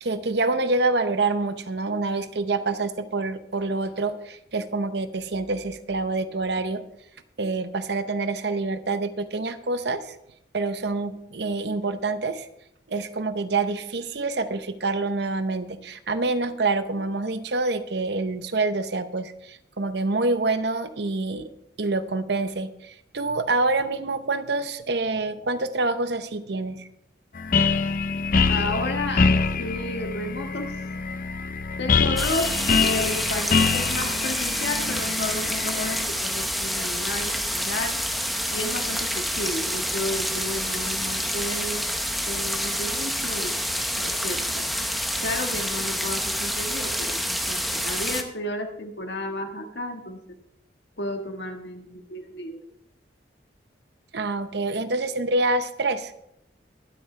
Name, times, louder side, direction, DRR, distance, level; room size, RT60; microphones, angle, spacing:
voice 1, 0.0-6.8 7.4-10.1 10.5-12.5 12.9-21.5 21.8-26.9 54.1-56.1, right 3 dB, 65° right, 11 dB, 0.8 m, -26 dB
sound 1, 27.4-36.1, left 4 dB, 45° left, 0.5 m, -25 dB
voice 2, 28.5-30.7 31.8-32.5 32.8-38.0 38.5-41.9 42.2-43.6 43.9-44.7 45.2-50.4 51.0-52.6, left 1 dB, 70° left, 4 dB, 1.5 m, -32 dB
sound 2, 32.2-48.2, equal, ahead, 0.7 m, -28 dB
21.5 x 8.2 x 3.3 m, 0.80 s
head